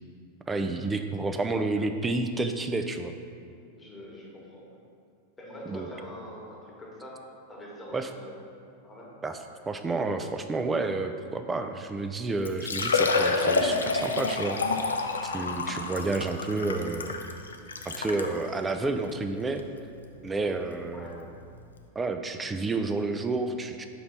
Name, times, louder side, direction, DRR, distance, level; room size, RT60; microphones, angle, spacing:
voice 1, 0.5-3.1 5.7-5.9 7.9-8.1 9.2-9.4 9.7-15.0 15.2-17.1 18.0-19.6 20.2-21.3 22.0-23.9, right 3 dB, 15° right, 7 dB, 0.4 m, -30 dB
voice 2, 3.8-4.8 5.4-7.2 7.5-8.4 8.8-9.1 20.9-21.2, left 1 dB, 15° left, -4 dB, 1.3 m, -44 dB
Liquid, 12.0-12.1 12.4-18.3 19.0-19.1 19.6-19.7 21.3-21.4 21.6-21.7, left 4 dB, 70° left, 0.4 m, -28 dB
4.6 x 4.0 x 5.2 m, 2.4 s
figure-of-eight pair, 90°, 0 cm